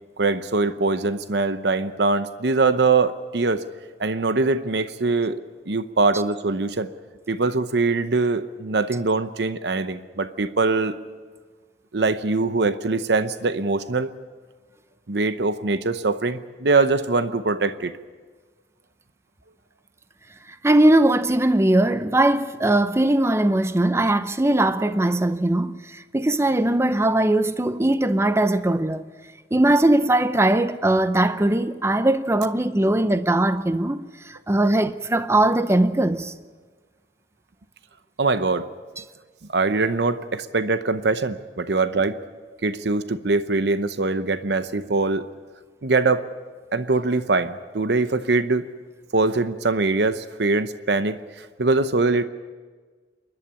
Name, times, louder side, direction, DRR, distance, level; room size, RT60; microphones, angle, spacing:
voice 1, 0.2-3.6 4.0-5.4 5.7-6.9 7.3-11.0 11.9-14.1 15.1-17.9 38.2-38.7 39.5-42.2 42.6-45.2 45.8-46.3 46.7-48.7 49.1-52.2, right 3 dB, 70° right, 0.8 m, -22 dB
voice 2, 20.6-29.0 29.5-36.3, right 1 dB, 15° right, 0.6 m, -20 dB
28.0 x 11.5 x 8.7 m
head